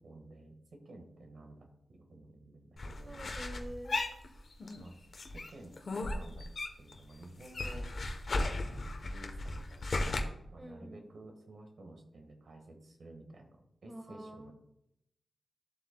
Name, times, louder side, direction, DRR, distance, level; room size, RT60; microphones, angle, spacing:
voice 1, 0.0-3.2 4.8-5.1 5.3-5.7 6.0-6.5 6.8-13.5 13.8-14.5, right 2 dB, 60° right, 4 dB, 1.7 m, -53 dB
sound 1, 2.8-4.8 5.1-7.0 7.2-10.2, left 2 dB, 50° left, 1.0 m, -36 dB
voice 2, 3.0-4.0 10.6-11.0 13.9-14.5, right 1 dB, 20° right, 3 dB, 1.5 m, -46 dB
13.0 x 7.5 x 2.3 m, 0.80 s
wide cardioid pair, 165°, 0 cm